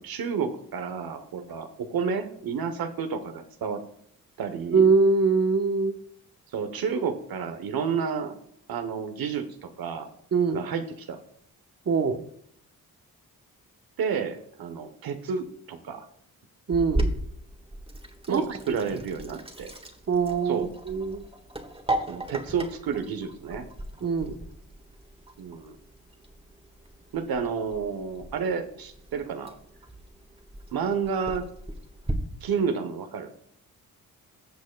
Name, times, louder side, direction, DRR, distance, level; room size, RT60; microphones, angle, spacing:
voice 1, 0.0-3.8 4.4-4.8 6.5-8.4 8.7-10.1 10.5-11.2 14.0-16.1 18.3-19.7 20.4-20.7 22.1-23.7 25.4-25.7 27.1-29.5 30.7-31.5 32.4-33.3, right 6 dB, 75° right, 7 dB, 1.0 m, -30 dB
voice 2, 4.7-6.0 10.3-10.6 11.9-12.2 16.7-17.1 18.3-18.6 20.1-21.3 24.0-24.4, right 4 dB, 40° right, 8 dB, 1.0 m, -23 dB
Sink (filling or washing), 16.7-32.1, right 1 dB, 15° right, 1.6 m, -37 dB
16.5 x 6.3 x 2.2 m, 0.66 s
supercardioid pair, 55°, 37 cm